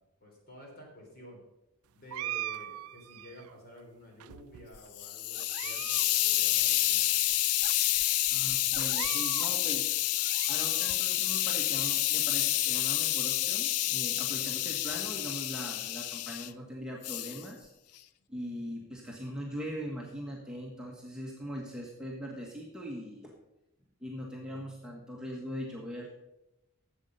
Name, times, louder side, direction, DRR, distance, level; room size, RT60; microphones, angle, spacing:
voice 1, 0.2-1.4 1.9-7.1, left 1 dB, 45° left, -1 dB, 3.5 m, -51 dB
sound 1, 2.1-3.5 4.2-4.9 5.4-6.1 6.3-6.4 7.1-7.2 7.6-7.7 8.7-9.5 10.0-11.0, right 13 dB, 80° right, 0.4 m, -41 dB
Hiss, 4.7-16.5 17.0-17.4, left 14 dB, 90° left, 0.5 m, -29 dB
voice 2, 8.3-10.1 10.5-17.7 18.3-23.4 24.0-26.1, equal, 5° right, -3 dB, 1.3 m, -41 dB
12.0 x 7.8 x 5.4 m, 0.92 s
head